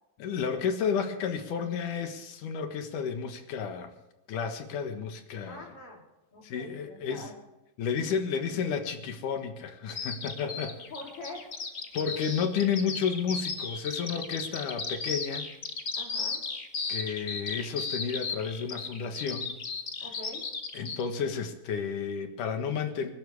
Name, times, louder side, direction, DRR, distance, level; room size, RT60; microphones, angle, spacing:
voice 1, 0.2-3.9 4.3-5.7 6.4-7.3 7.8-10.7 11.9-15.5 16.9-19.6 20.7-23.1, left 6 dB, 70° left, 6 dB, 2.9 m, -31 dB
voice 2, 5.4-6.0 6.3-7.3 10.4-11.5 16.0-16.4 20.0-20.4, left 1 dB, 40° left, -1 dB, 4.3 m, -45 dB
Bird vocalization bird call bird song, 9.9-21.0, left 4 dB, 85° left, 0.7 m, -35 dB
27.5 x 12.5 x 3.6 m, 1.0 s
omnidirectional pair, 4.0 m